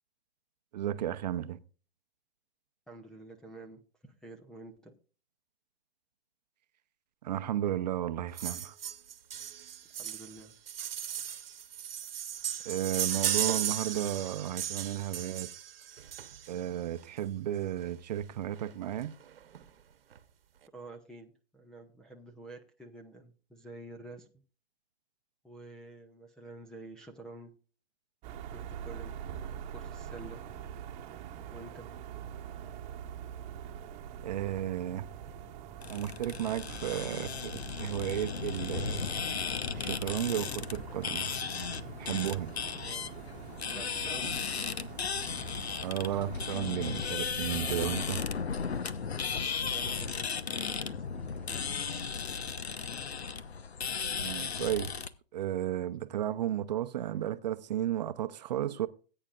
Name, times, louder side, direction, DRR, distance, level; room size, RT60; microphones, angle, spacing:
voice 1, 0.7-1.6 7.2-8.7 12.6-15.5 16.5-19.1 34.2-35.1 35.9-39.1 39.8-41.3 42.0-42.5 45.8-48.2 54.2-55.0 55.3-58.9, right 11 dB, 40° right, 0.7 m, -33 dB
voice 2, 2.9-4.9 9.8-10.5 20.7-24.3 25.4-27.5 28.5-29.2 29.7-30.4 31.5-31.9 42.8-43.3 43.7-44.4 49.7-52.0, right 2 dB, ahead, 0.4 m, -49 dB
sound 1, 8.4-16.7 17.8-17.9 18.2-18.3 18.5-18.7 19.0-19.6 20.1-20.2, right 9 dB, 65° right, 1.1 m, -36 dB
sound 2, 28.2-46.6, right 8 dB, 25° right, 1.2 m, -45 dB
sound 3, 35.8-55.1, left 6 dB, 85° left, 1.0 m, -35 dB
19.0 x 8.9 x 2.4 m
hypercardioid pair, 140°, 31 cm